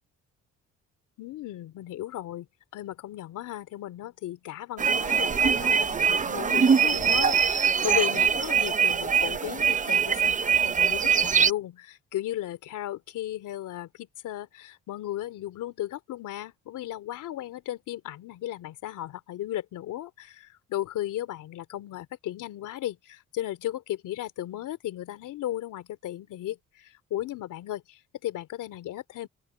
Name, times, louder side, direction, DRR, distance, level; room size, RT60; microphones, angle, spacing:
voice 1, 1.2-2.5 2.7-29.3, left 13 dB, 85° left, 3.3 m, -35 dB
sound 1, 4.8-11.5, right 7 dB, 25° right, 0.6 m, -23 dB
open air
cardioid pair, 90°, 30 cm